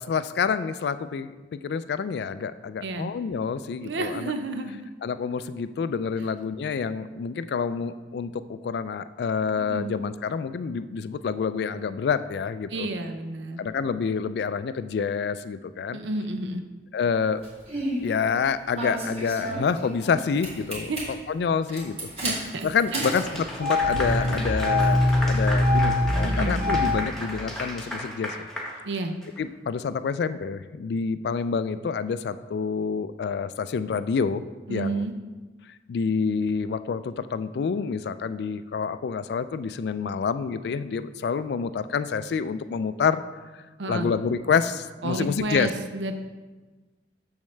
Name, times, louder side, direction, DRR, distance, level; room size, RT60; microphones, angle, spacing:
voice 1, 0.0-4.3 5.0-12.9 13.6-16.0 16.9-17.4 18.0-20.9 21.3-22.0 22.6-25.0 25.3-28.5 29.4-34.4 34.7-35.0 35.9-43.2 43.9-45.7, left 6 dB, 65° left, 13 dB, 0.3 m, -28 dB
voice 2, 2.8-3.2 3.8-4.8 9.6-9.9 12.7-13.7 15.9-16.6 20.9-21.0 22.2-22.7 22.9-23.2 26.2-26.6 28.8-29.2 34.7-35.1 43.8-44.1 45.0-46.1, right 2 dB, 85° right, 7 dB, 0.6 m, -31 dB
Engine starting, 17.4-18.0 18.8-20.2 20.4-21.0 21.7-27.0, left 1 dB, 35° right, 2.1 m, -24 dB
Clapping / Applause, 23.0-29.4, equal, ahead, 1.0 m, -34 dB
7.0 x 6.4 x 3.2 m, 1.2 s
head